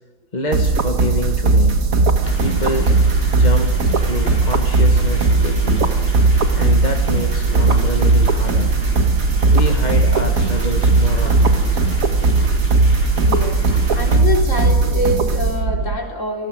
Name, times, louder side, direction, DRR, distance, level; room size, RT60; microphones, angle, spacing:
voice 1, 0.3-1.9 2.4-2.9 3.3-3.7 4.0-5.9 6.5-8.8 9.5-11.7, left 1 dB, 30° left, 3 dB, 1.7 m, -27 dB
sound 1, 0.5-16.0, right 3 dB, 65° right, 1.9 m, -17 dB
sound 2, 2.2-14.2, equal, 10° left, 4.7 m, -34 dB
voice 2, 13.2-13.6 14.0-16.5, left 1 dB, 50° left, 0 dB, 4.4 m, -24 dB
28.5 x 20.0 x 6.3 m, 1.3 s
omnidirectional pair, 1.6 m